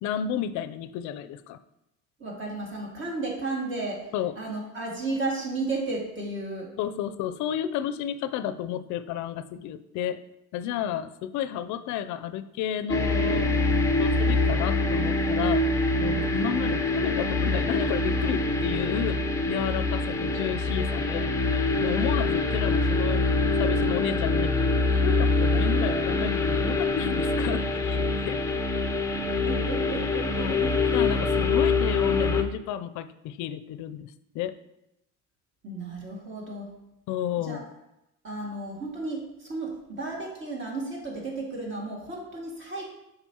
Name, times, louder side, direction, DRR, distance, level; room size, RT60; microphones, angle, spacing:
voice 1, 0.0-1.6 4.1-4.3 6.8-10.2 10.5-13.5 14.0-23.2 23.5-28.5 30.4-30.7 30.9-34.6 37.1-37.6, left 10 dB, 70° left, 12 dB, 0.5 m, -32 dB
voice 2, 2.2-4.1 4.4-6.7 29.4-30.7 35.6-36.7 37.4-37.6 38.2-42.8, right 2 dB, 40° right, -1 dB, 2.0 m, -33 dB
sound 1, 12.9-32.4, left 3 dB, 10° left, 0.5 m, -25 dB
7.0 x 5.2 x 2.8 m, 0.87 s
cardioid pair, 105°, 31 cm